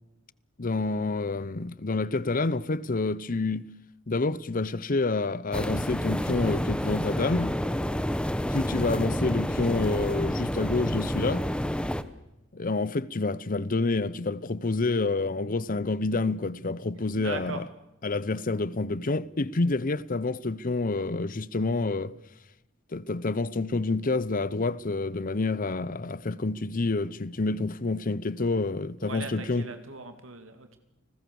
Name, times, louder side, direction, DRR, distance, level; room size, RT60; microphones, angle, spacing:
voice 1, 0.6-3.7 4.1-7.5 8.5-11.5 12.5-17.7 18.0-22.1 22.9-29.7, left 3 dB, 45° left, 0.8 m, -28 dB
sound 1, 5.2-11.2, right 1 dB, 35° right, 5.4 m, -49 dB
sound 2, 5.5-12.0, equal, 5° left, 1.1 m, -29 dB
voice 2, 17.1-17.6 29.0-30.8, right 3 dB, 75° right, 2.7 m, -39 dB
30.0 x 20.0 x 7.1 m
head